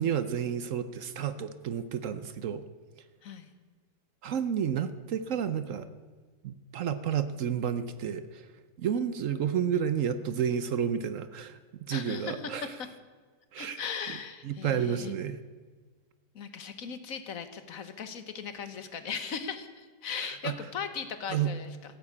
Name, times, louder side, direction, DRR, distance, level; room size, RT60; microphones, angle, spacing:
voice 1, 0.0-2.6 4.2-5.9 6.4-8.5 8.8-12.7 13.5-13.8 14.4-15.4 20.1-20.5 21.3-21.5, right 8 dB, 60° right, 12 dB, 0.8 m, -31 dB
voice 2, 11.9-12.9 13.6-15.1 16.3-21.8, left 6 dB, 55° left, 10 dB, 1.4 m, -38 dB
15.0 x 8.8 x 8.5 m, 1.5 s
omnidirectional pair, 1.9 m